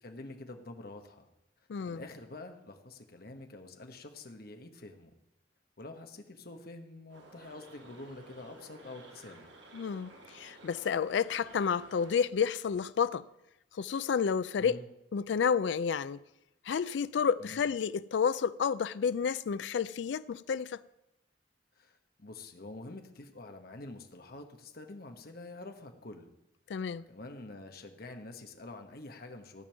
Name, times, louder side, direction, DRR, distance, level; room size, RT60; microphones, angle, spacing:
voice 1, 0.0-1.3 1.8-5.1 5.8-9.5 14.6-14.9 17.4-17.6 21.8-26.3 27.1-29.6, left 2 dB, 55° left, 1.3 m, -47 dB
voice 2, 1.7-2.0 9.7-13.2 13.8-14.8 15.1-16.2 16.7-20.8 26.7-27.0, left 6 dB, 75° left, 0.4 m, -30 dB
sound 1, 7.1-12.2, right 2 dB, 85° right, 2.0 m, -54 dB
15.0 x 5.3 x 8.9 m
head